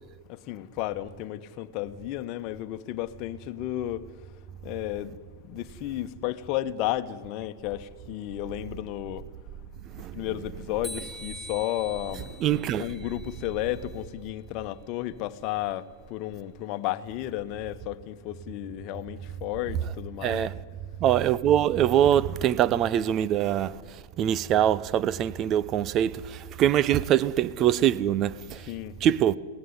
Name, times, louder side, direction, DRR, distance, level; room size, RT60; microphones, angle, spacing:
voice 1, 0.3-4.1 4.6-5.2 5.4-9.2 10.1-20.5 28.7-28.9, left 14 dB, 45° left, 1.3 m, -33 dB
sound 1, 10.8-13.9, left 1 dB, 10° right, 6.0 m, -43 dB
voice 2, 12.4-12.9 20.2-20.5 21.0-28.7 29.0-29.4, right 11 dB, 35° right, 0.8 m, -24 dB
23.0 x 18.0 x 9.8 m
hypercardioid pair, 115°, 0 cm